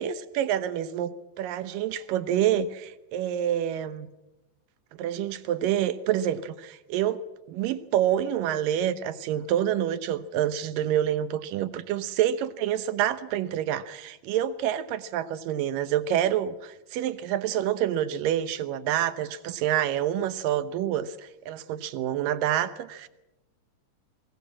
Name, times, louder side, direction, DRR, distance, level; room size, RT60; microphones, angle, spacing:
voice 1, 0.0-4.1 4.9-7.2 7.5-23.1, right 11 dB, 85° right, 13 dB, 2.7 m, -27 dB
24.0 x 19.5 x 7.5 m, 0.99 s
omnidirectional pair, 3.8 m